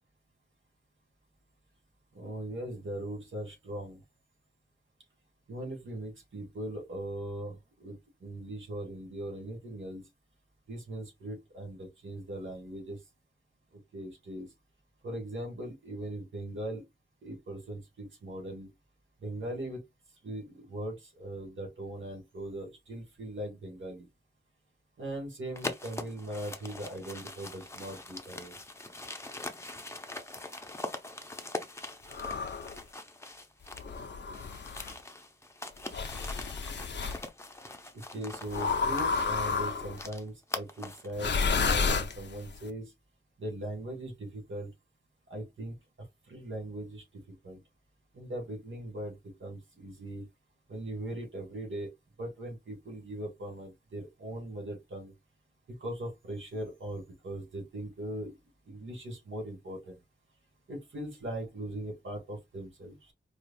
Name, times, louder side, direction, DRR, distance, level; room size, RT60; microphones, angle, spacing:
voice 1, 2.1-4.0 5.5-10.0 10.7-13.0 13.9-14.5 15.0-16.8 17.2-18.7 19.2-19.8 20.2-24.1 25.0-28.5 37.9-42.9 43.4-44.7 45.3-45.7 46.3-47.6 48.1-50.2 50.7-51.9 52.2-55.1 55.8-58.3 58.7-60.0 60.7-63.1, right 1 dB, 85° right, 2.0 m, -40 dB
sound 1, 25.6-34.0 34.3-41.1, left 2 dB, 15° left, 0.6 m, -42 dB
sound 2, 32.1-32.8 33.7-34.9 35.9-37.2 38.5-40.0 41.1-42.6, left 5 dB, 65° left, 0.6 m, -31 dB
4.8 x 2.4 x 2.5 m
wide cardioid pair, 110°, 20 cm